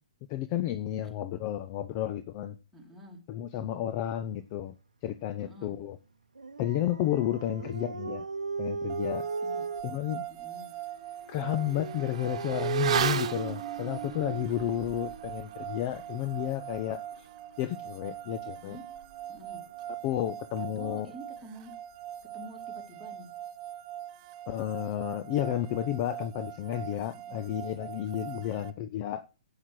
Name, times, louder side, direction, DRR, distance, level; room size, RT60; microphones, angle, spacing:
voice 1, 0.3-2.6 3.3-4.7 5.0-6.0 6.6-8.3 8.6-9.3 9.8-10.2 11.3-17.3 17.6-18.8 20.0-21.1 24.5-29.2, left 12 dB, 35° left, 0.7 m, -32 dB
voice 2, 2.7-3.2 5.4-5.7 7.5-7.7 9.4-9.7 10.3-10.7 18.6-18.8 19.3-19.6 20.6-21.7 22.3-23.3 27.1-27.5 28.2-28.6, right 1 dB, ahead, 2.9 m, -48 dB
Dog, 6.4-9.8, right 4 dB, 85° right, 0.7 m, -36 dB
sound 1, 8.9-28.7, right 11 dB, 30° right, 0.9 m, -42 dB
Motorcycle / Accelerating revving vroom, 9.8-9.9 10.3-20.3 20.5-20.7, right 8 dB, 55° right, 1.1 m, -36 dB
8.5 x 7.2 x 6.3 m
figure-of-eight pair, 125°, 4 cm